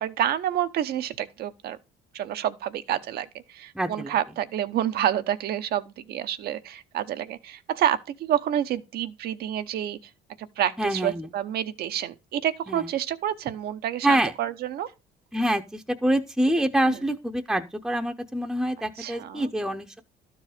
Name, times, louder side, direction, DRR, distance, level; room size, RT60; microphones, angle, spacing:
voice 1, 0.0-1.8 2.1-10.0 10.4-14.9 16.9-17.0 19.0-19.5, right 11 dB, 70° right, 0.8 m, -28 dB
voice 2, 3.7-4.1 10.8-11.3 12.7-12.9 14.0-14.3 15.3-20.0, right 1 dB, ahead, 0.7 m, -26 dB
12.0 x 4.7 x 5.0 m
cardioid pair, 110°, 17 cm